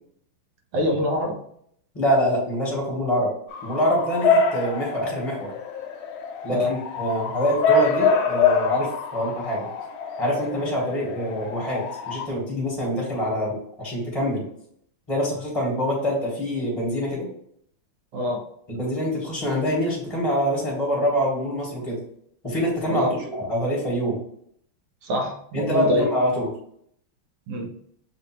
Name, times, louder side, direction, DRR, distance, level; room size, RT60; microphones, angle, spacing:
voice 1, 0.7-1.4 6.5-6.7 18.1-18.4 22.9-23.1 25.0-26.1 27.5-27.7, left 1 dB, 80° right, 2 dB, 1.7 m, -25 dB
voice 2, 1.9-3.3 3.6-5.5 6.4-9.7 10.2-14.4 15.1-17.3 18.7-22.0 22.4-24.2 25.5-26.5, equal, 15° left, -4 dB, 1.0 m, -25 dB
Bark / Motor vehicle (road) / Siren, 3.5-12.3, left 4 dB, 75° left, 1.4 m, -25 dB
6.2 x 2.6 x 3.0 m, 0.68 s
omnidirectional pair, 2.4 m